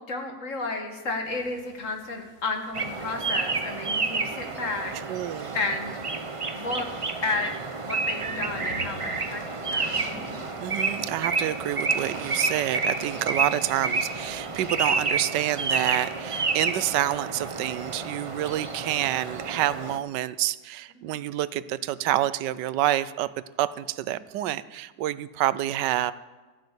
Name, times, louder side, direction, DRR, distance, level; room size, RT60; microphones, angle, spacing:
voice 1, 0.0-4.9 5.5-6.0 6.5-6.9 7.2-7.5 7.8-10.1 21.0-21.2, left 3 dB, 50° left, 4 dB, 1.9 m, -32 dB
sound 1, 1.2-18.6, left 1 dB, 65° left, 3.3 m, -50 dB
sound 2, 2.7-20.0, right 4 dB, 35° right, 0.5 m, -30 dB
voice 2, 5.1-5.6 10.6-23.3 23.6-26.1, right 13 dB, 85° right, 16 dB, 1.2 m, -28 dB
14.0 x 8.7 x 8.1 m, 1.3 s
omnidirectional pair, 1.8 m